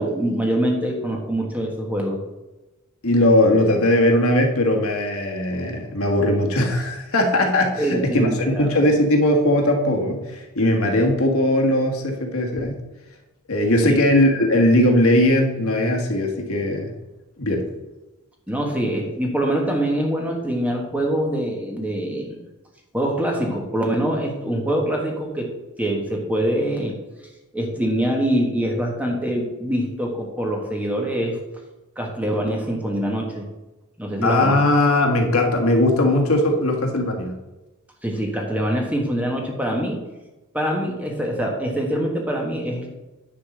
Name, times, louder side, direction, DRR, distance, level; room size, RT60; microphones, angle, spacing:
voice 1, 0.0-2.2 7.8-8.7 13.8-13.9 18.5-22.4 22.9-25.5 25.8-26.9 27.5-31.4 32.0-33.5 34.0-34.6 38.0-40.0 40.5-42.9, right 1 dB, 5° right, 0 dB, 1.4 m, -24 dB
voice 2, 3.0-12.8 13.5-16.9 17.4-17.7 34.2-37.3, left 1 dB, 70° left, 2 dB, 1.6 m, -19 dB
10.0 x 4.3 x 6.4 m, 1.1 s
head